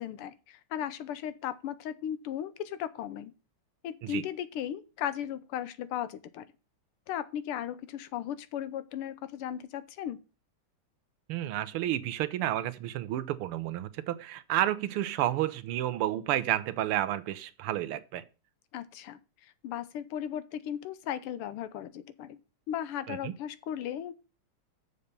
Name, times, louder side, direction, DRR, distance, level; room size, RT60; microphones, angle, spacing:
voice 1, 0.0-3.3 3.8-6.4 7.1-10.2 18.7-22.4 22.7-24.1, left 10 dB, 85° left, 1.7 m, -36 dB
voice 2, 11.3-18.2 23.1-23.3, right 13 dB, 85° right, 1.6 m, -31 dB
6.9 x 6.5 x 6.7 m
omnidirectional pair, 2.4 m